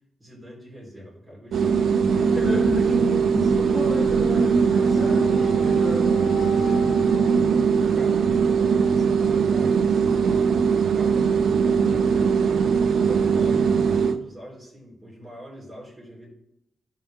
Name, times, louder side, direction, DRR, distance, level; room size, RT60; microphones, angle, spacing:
voice 1, 0.2-1.8 2.1-2.6 4.8-6.1 6.4-6.9 7.3-8.3 8.7-10.3 10.7-12.7 13.0-16.3, equal, 15° right, -4 dB, 3.8 m, -42 dB
sound 1, 1.5-14.2, right 6 dB, 90° right, 0.6 m, -20 dB
voice 2, 2.1-6.1, left 1 dB, 20° left, -4 dB, 1.8 m, -31 dB
sound 2, 3.7-9.0, left 6 dB, 80° left, 0.9 m, -39 dB
11.5 x 5.6 x 3.6 m, 0.76 s
wide cardioid pair, 160°, 0 cm